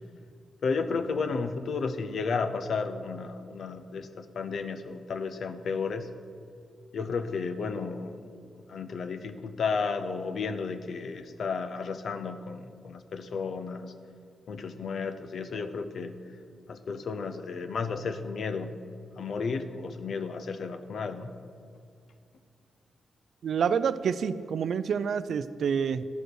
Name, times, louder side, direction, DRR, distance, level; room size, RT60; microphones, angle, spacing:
voice 1, 0.6-6.1 6.9-13.9 14.5-16.2 16.7-18.8 19.2-21.3, left 4 dB, 65° left, 9 dB, 0.6 m, -33 dB
voice 2, 23.4-26.0, right 7 dB, 70° right, 14 dB, 0.4 m, -28 dB
12.5 x 5.2 x 6.3 m, 2.3 s
cardioid pair, 100°, 0 cm